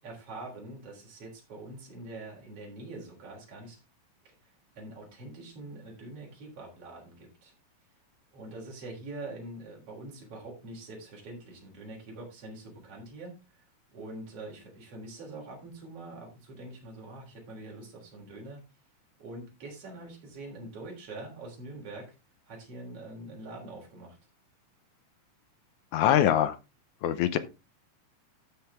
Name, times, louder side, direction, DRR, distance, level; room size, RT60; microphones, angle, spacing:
voice 1, 0.0-3.8 4.2-7.5 8.3-13.6 13.9-18.6 19.2-22.2 22.5-24.2, right 2 dB, 45° right, -1 dB, 4.5 m, -44 dB
voice 2, 25.9-26.6 27.0-27.4, left 11 dB, 70° left, 13 dB, 2.0 m, -23 dB
13.0 x 6.8 x 3.5 m, 0.27 s
omnidirectional pair, 3.8 m